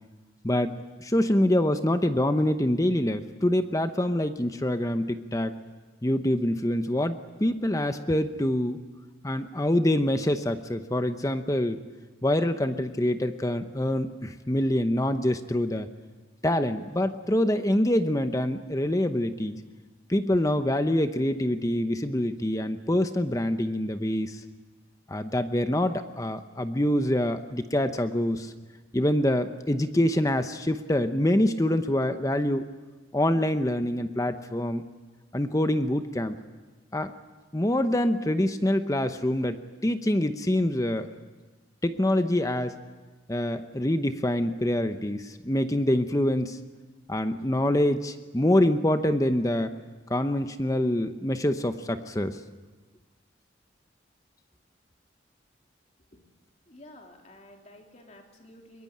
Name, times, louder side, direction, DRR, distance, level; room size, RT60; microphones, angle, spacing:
voice 1, 0.4-5.5 6.0-8.8 9.2-11.8 12.2-15.9 16.4-19.6 20.1-24.4 25.1-28.5 28.9-32.6 33.1-34.8 35.3-36.4 36.9-37.1 37.5-41.1 41.8-42.8 43.3-46.6 47.1-49.7 50.1-52.4, left 1 dB, 15° left, 9 dB, 0.9 m, -25 dB
voice 2, 56.7-58.8, left 1 dB, 40° left, 2 dB, 3.4 m, -51 dB
23.0 x 21.0 x 8.7 m, 1.3 s
head